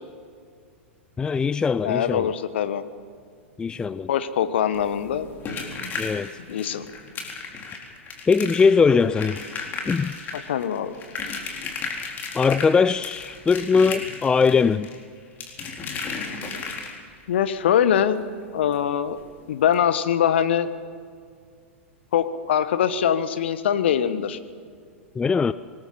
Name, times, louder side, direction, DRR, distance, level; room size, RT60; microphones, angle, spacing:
voice 1, 1.2-2.3 3.6-4.1 6.0-6.3 8.3-9.4 9.9-10.2 12.3-14.9 25.2-25.5, left 5 dB, 10° left, 15 dB, 0.4 m, -20 dB
voice 2, 1.8-2.8 4.1-5.3 6.5-6.8 10.3-11.0 17.3-18.2 18.5-19.2 19.5-20.7 22.1-24.4, left 9 dB, 60° left, 12 dB, 1.3 m, -23 dB
sound 1, 4.7-17.2 18.7-18.8 19.1-19.2 19.6-19.7, left 4 dB, 25° left, 3.8 m, -35 dB
25.5 x 20.0 x 5.7 m, 2.1 s
figure-of-eight pair, 95°, 7 cm